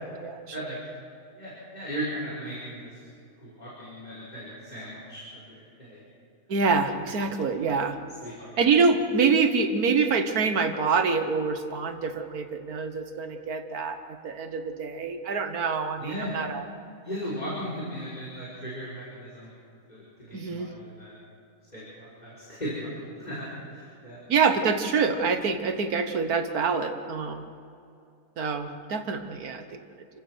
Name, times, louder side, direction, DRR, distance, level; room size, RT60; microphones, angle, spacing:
voice 1, 0.2-0.7 6.5-8.0 8.6-16.6 20.3-20.7 24.3-27.4 28.4-29.8, right 5 dB, 80° right, 7 dB, 1.8 m, -26 dB
voice 2, 1.4-3.0 3.4-6.0 8.2-8.6 16.0-16.3 17.0-19.5 19.9-21.1 21.7-24.2, equal, 30° left, -7 dB, 5.0 m, -37 dB
28.5 x 16.0 x 6.3 m, 2.5 s
omnidirectional pair, 1.6 m